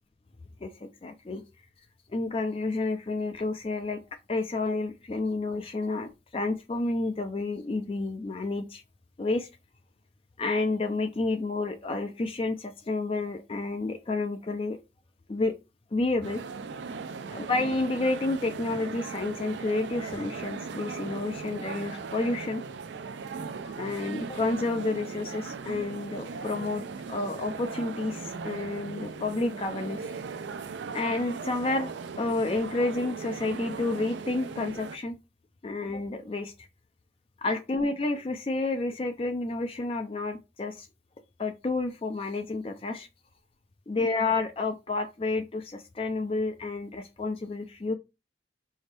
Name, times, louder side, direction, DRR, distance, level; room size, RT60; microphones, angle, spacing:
voice 1, 0.6-1.4 2.1-4.0 4.3-8.8 9.2-9.5 10.4-14.8 15.3-15.5 15.9-16.4 17.3-22.6 23.7-30.1 30.9-31.9 32.2-35.2 35.6-36.5 37.4-40.9 41.4-43.1 43.9-47.9, left 2 dB, 30° left, 0.4 m, -30 dB
sound 1, 16.2-35.0, right 5 dB, 90° right, 0.4 m, -38 dB
4.3 x 2.7 x 3.3 m
head